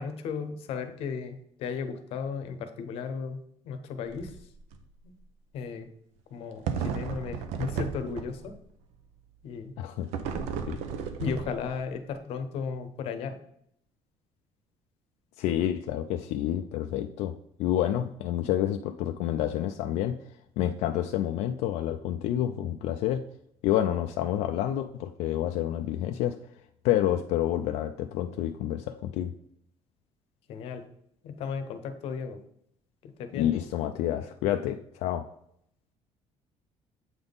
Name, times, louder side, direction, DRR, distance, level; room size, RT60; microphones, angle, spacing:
voice 1, 0.0-3.4 3.6-4.3 5.0-5.1 5.5-5.9 6.3-8.5 9.4-9.7 11.2-13.4 30.5-30.8 31.2-32.4 33.0-33.5, left 5 dB, 60° left, 8 dB, 0.8 m, -35 dB
sound 1, 4.0-4.4 4.7-4.8 6.7-8.6 10.1-11.9, right 6 dB, 80° right, 0.7 m, -34 dB
voice 2, 9.8-10.1 10.7-10.8 15.4-17.3 17.6-20.2 20.6-23.3 23.6-26.4 26.8-29.3 33.3-35.3, left 12 dB, 90° left, 6 dB, 0.4 m, -28 dB
7.8 x 3.6 x 3.9 m, 0.71 s
cardioid pair, 175°, 11 cm